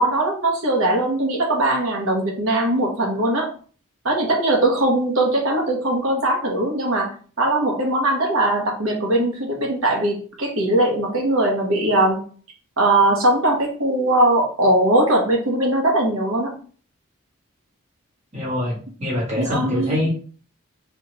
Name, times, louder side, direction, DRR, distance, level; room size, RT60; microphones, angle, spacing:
voice 1, 0.0-3.5 4.0-7.1 7.4-12.2 12.8-16.5 19.4-20.0, right 1 dB, 85° right, 0 dB, 1.3 m, -20 dB
voice 2, 18.3-20.1, left 1 dB, 30° right, -6 dB, 2.0 m, -24 dB
3.5 x 3.3 x 3.0 m, 0.42 s
head